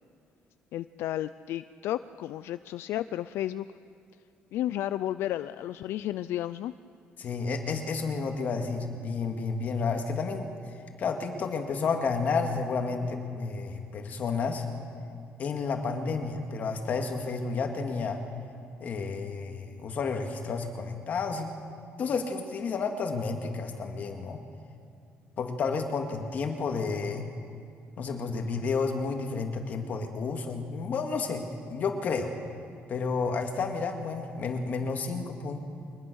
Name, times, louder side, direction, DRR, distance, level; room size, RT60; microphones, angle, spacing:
voice 1, 0.7-3.7 4.5-6.7, left 13 dB, 75° left, 13 dB, 0.4 m, -32 dB
voice 2, 7.2-10.5 11.0-14.7 15.4-18.2 18.8-21.5 22.0-24.4 25.4-27.3 28.0-32.3 32.9-35.6, left 4 dB, 45° left, 4 dB, 2.2 m, -31 dB
23.5 x 21.0 x 6.4 m, 2.4 s
cardioid pair, 160°, 4 cm